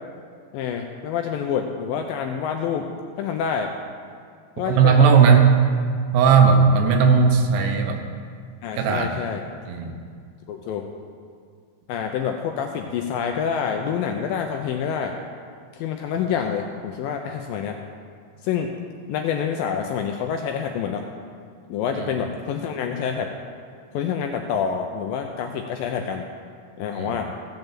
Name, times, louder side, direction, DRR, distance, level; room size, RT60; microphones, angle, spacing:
voice 1, 0.5-2.9 3.2-3.7 4.6-5.1 8.6-9.4 10.5-10.9 11.9-15.2 15.8-17.8 18.4-18.7 19.1-21.1 21.7-23.3 23.9-26.3 26.8-27.2, left 7 dB, 80° left, 4 dB, 2.1 m, -27 dB
voice 2, 4.7-5.5 6.1-8.0 8.8-9.1 9.6-9.9 21.9-22.1 26.9-27.1, right 6 dB, 85° right, 4 dB, 3.2 m, -16 dB
16.0 x 5.5 x 7.5 m, 2.1 s
omnidirectional pair, 4.6 m